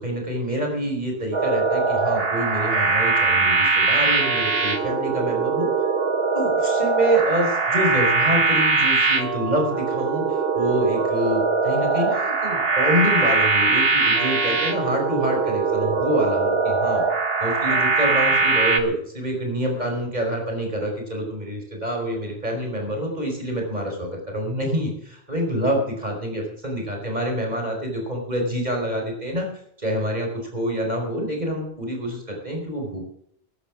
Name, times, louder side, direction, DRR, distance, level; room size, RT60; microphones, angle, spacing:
voice 1, 0.0-5.7 6.3-17.0 17.4-29.5 29.8-33.0, equal, 40° right, 2 dB, 4.9 m, -26 dB
sound 1, 1.3-18.8, right 4 dB, 65° right, 1.6 m, -21 dB
14.5 x 11.5 x 6.2 m, 0.68 s
omnidirectional pair, 1.1 m